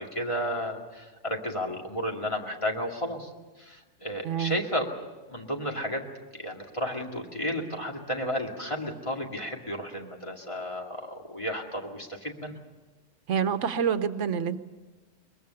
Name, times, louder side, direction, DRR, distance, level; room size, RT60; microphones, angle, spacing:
voice 1, 0.0-3.3 3.6-4.9 5.3-6.0 6.3-12.6, equal, 25° left, 1 dB, 2.4 m, -32 dB
voice 2, 4.2-4.6 13.3-14.6, right 7 dB, 80° right, 10 dB, 1.2 m, -27 dB
22.5 x 22.0 x 6.9 m, 1.2 s
omnidirectional pair, 1.2 m